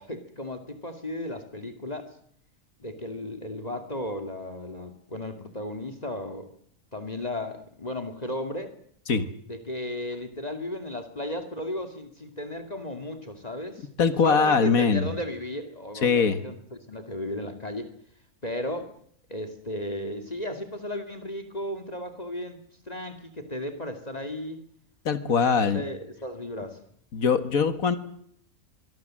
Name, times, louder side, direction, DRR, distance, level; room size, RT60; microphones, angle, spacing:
voice 1, 0.0-2.1 2.8-6.5 6.9-8.7 9.5-13.9 14.2-16.6 16.9-17.9 18.4-18.9 19.3-22.6 22.9-24.6 25.7-26.8, left 1 dB, 30° left, 10 dB, 2.3 m, -34 dB
voice 2, 14.0-15.1 16.0-16.4 25.1-25.8 27.1-28.0, left 5 dB, 90° left, 11 dB, 2.1 m, -22 dB
24.0 x 23.5 x 7.6 m, 0.67 s
omnidirectional pair, 1.4 m